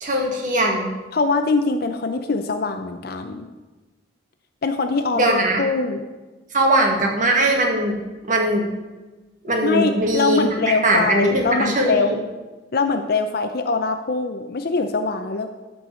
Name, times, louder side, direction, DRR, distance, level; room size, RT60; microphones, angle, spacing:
voice 1, 0.0-0.9 5.2-5.6 6.5-8.0 8.2-8.7 9.4-12.2, right 1 dB, 45° right, 1 dB, 2.0 m, -20 dB
voice 2, 1.1-3.5 4.6-6.0 9.6-12.1 12.7-15.5, left 3 dB, 55° left, 7 dB, 0.6 m, -23 dB
12.5 x 4.8 x 6.9 m, 1.2 s
head